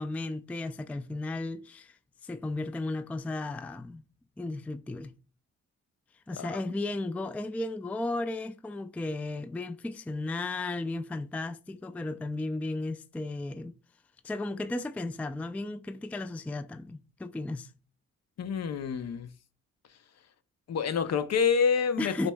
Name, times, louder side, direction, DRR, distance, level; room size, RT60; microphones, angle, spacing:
voice 1, 0.0-4.0 4.4-5.1 6.3-13.7 14.2-17.7 22.0-22.3, left 2 dB, 5° left, 0.3 m, -34 dB
voice 2, 18.4-19.3 20.7-22.3, left 6 dB, 55° left, 0.6 m, -27 dB
5.1 x 3.0 x 2.2 m
supercardioid pair, 55°, 31 cm